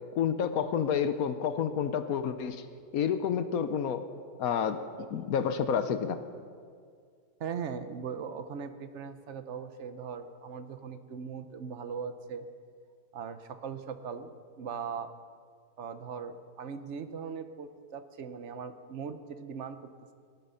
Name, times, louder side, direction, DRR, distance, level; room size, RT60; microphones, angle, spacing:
voice 1, 0.1-2.6 2.9-4.0 4.4-4.8 5.1-6.2, left 7 dB, 65° left, 11 dB, 1.1 m, -29 dB
voice 2, 7.4-12.5 13.1-15.1 15.8-19.8, right 6 dB, 55° right, 10 dB, 0.9 m, -39 dB
17.5 x 11.0 x 5.6 m, 2.1 s
omnidirectional pair, 1.7 m